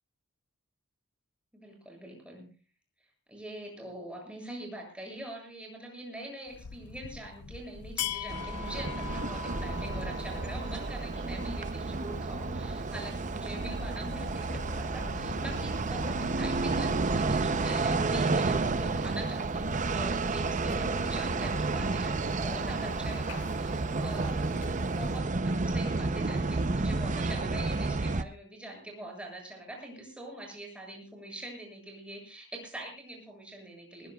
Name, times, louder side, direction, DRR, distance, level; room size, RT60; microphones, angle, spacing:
voice 1, 1.5-2.5 3.3-24.5 24.9-34.1, right 1 dB, 5° right, 0 dB, 7.6 m, -44 dB
sound 1, 6.5-24.9, left 8 dB, 85° left, 0.6 m, -44 dB
sound 2, 8.3-28.2, right 3 dB, 35° right, 0.7 m, -31 dB
Thunderstorm / Rain, 8.6-25.2, right 2 dB, 55° right, 1.3 m, -45 dB
21.0 x 20.0 x 2.4 m, 0.35 s
head